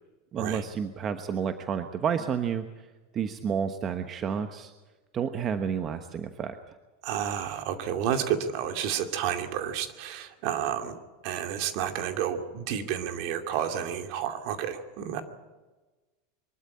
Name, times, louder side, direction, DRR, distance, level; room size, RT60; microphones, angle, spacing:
voice 1, 0.3-2.7 3.1-4.7 5.1-6.8, right 7 dB, 30° right, 8 dB, 1.1 m, -30 dB
voice 2, 7.0-15.2, right 9 dB, 60° right, 6 dB, 2.5 m, -31 dB
23.5 x 13.0 x 9.8 m, 1.2 s
supercardioid pair, 125°, 0 cm